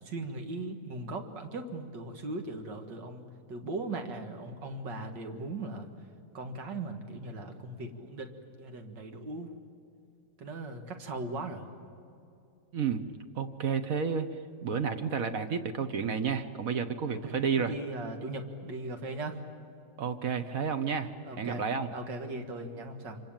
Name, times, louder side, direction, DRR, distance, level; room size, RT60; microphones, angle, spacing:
voice 1, 0.0-3.2 3.5-5.9 6.3-9.5 10.4-11.7 17.2-19.4 21.2-21.6 21.9-23.2, right 2 dB, 90° right, 5 dB, 2.6 m, -38 dB
voice 2, 13.3-14.3 14.6-17.7 20.0-21.1 21.4-21.9, right 6 dB, 55° right, 8 dB, 1.3 m, -31 dB
27.0 x 25.0 x 8.9 m, 2.6 s
omnidirectional pair, 1.9 m